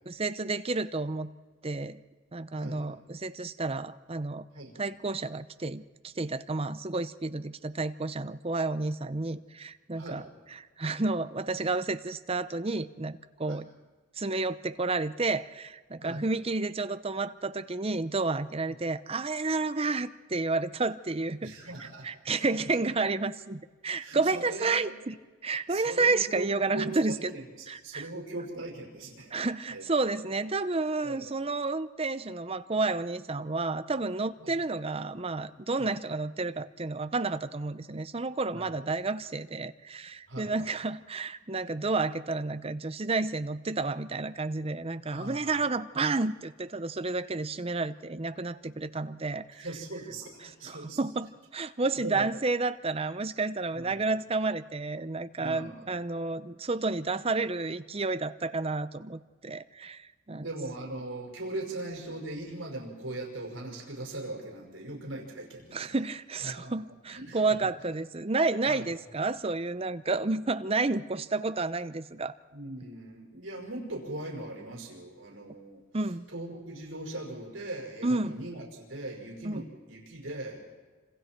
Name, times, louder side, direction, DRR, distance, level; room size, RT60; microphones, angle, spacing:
voice 1, 0.1-1.3 1.6-2.0 2.3-4.4 4.8-10.2 10.5-13.7 14.2-21.5 21.8-25.2 25.4-27.3 27.7-28.1 29.3-49.6 50.4-60.5 65.7-72.3 75.9-76.3 78.0-78.4 79.4-79.6, right 3 dB, 30° right, 12 dB, 0.7 m, -31 dB
voice 2, 2.5-2.9 4.5-4.8 9.9-10.2 13.5-13.6 16.0-16.3 21.4-22.1 22.4-22.5 24.0-24.9 25.7-29.3 29.7-30.2 31.0-31.4 34.4-34.5 35.8-35.9 38.5-38.8 40.3-40.6 45.1-45.6 49.5-51.0 51.9-52.3 53.7-54.1 55.4-55.9 60.3-65.9 66.4-66.7 67.1-67.5 68.7-68.8 72.5-75.8 76.3-80.7, right 2 dB, 70° right, 0 dB, 5.6 m, -40 dB
28.5 x 26.5 x 4.6 m, 1.4 s
head